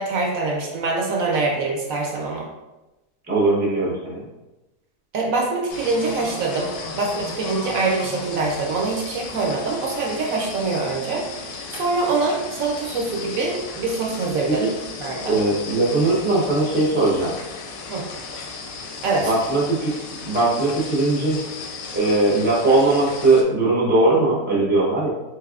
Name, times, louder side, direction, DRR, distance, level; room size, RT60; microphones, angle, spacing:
voice 1, 0.0-2.5 5.1-14.7 15.0-15.4 17.9-18.0 19.0-19.3, right 3 dB, 65° right, -1 dB, 0.9 m, -24 dB
voice 2, 3.3-4.2 14.5-14.7 15.3-17.3 19.2-19.9 20.2-21.4 21.9-25.1, right 2 dB, 10° right, -4 dB, 0.4 m, -19 dB
sound 1, 5.7-23.4, left 4 dB, 70° left, 0.9 m, -35 dB
4.0 x 3.3 x 2.4 m, 1.0 s
omnidirectional pair, 1.7 m